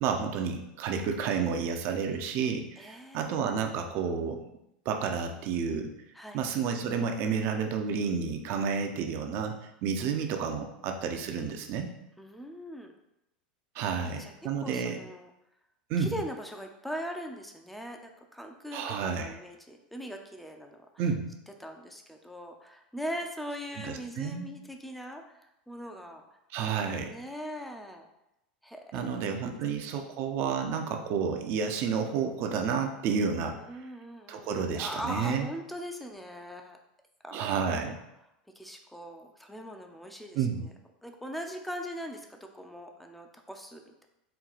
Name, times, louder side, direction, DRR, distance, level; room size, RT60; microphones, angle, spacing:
voice 1, 0.0-4.5 4.9-5.9 6.3-11.9 13.7-15.0 15.9-16.1 18.7-19.3 21.0-21.3 23.8-24.5 26.5-27.1 28.9-33.6 34.3-35.5 37.3-38.0 40.3-40.6, right 6 dB, 50° right, 5 dB, 0.6 m, -30 dB
voice 2, 2.8-3.6 6.1-6.4 12.2-12.9 13.9-15.3 16.0-20.9 21.6-26.2 27.1-28.1 28.6-29.6 29.9-30.0 33.6-36.8 37.2-37.5 38.6-40.7 41.0-44.0, equal, ahead, 4 dB, 0.5 m, -41 dB
4.4 x 2.3 x 3.9 m, 0.86 s
hypercardioid pair, 110°, 5 cm